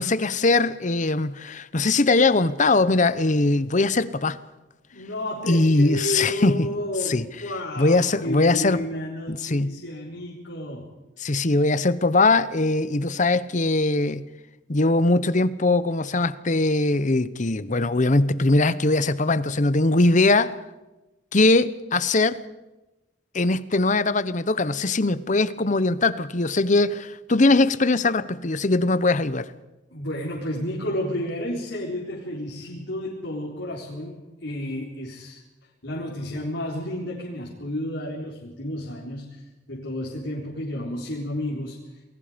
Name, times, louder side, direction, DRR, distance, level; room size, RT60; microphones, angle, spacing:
voice 1, 0.0-4.4 5.5-6.7 7.0-7.3 7.8-8.8 9.3-9.7 11.2-14.2 14.7-20.5 21.3-22.4 23.3-29.5, left 2 dB, 40° left, 15 dB, 0.9 m, -21 dB
voice 2, 4.9-10.9 29.9-35.4 35.8-39.4 39.7-41.8, left 1 dB, 65° left, -4 dB, 4.2 m, -31 dB
28.5 x 20.5 x 5.2 m, 1.1 s
head